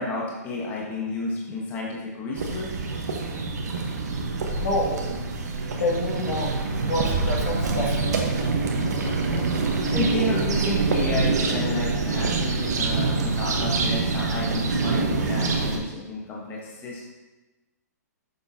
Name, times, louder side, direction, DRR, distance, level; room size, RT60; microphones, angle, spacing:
voice 1, 0.0-2.7 9.9-17.1, left 2 dB, 20° left, -4 dB, 1.1 m, -31 dB
sound 1, 2.3-15.8, right 3 dB, 75° right, 1.1 m, -25 dB
voice 2, 4.6-5.0 5.8-6.6 6.9-8.3 8.9-9.1, left 1 dB, 70° left, -2 dB, 2.0 m, -28 dB
6.8 x 6.6 x 2.8 m, 1.1 s
hypercardioid pair, 145°, 9 cm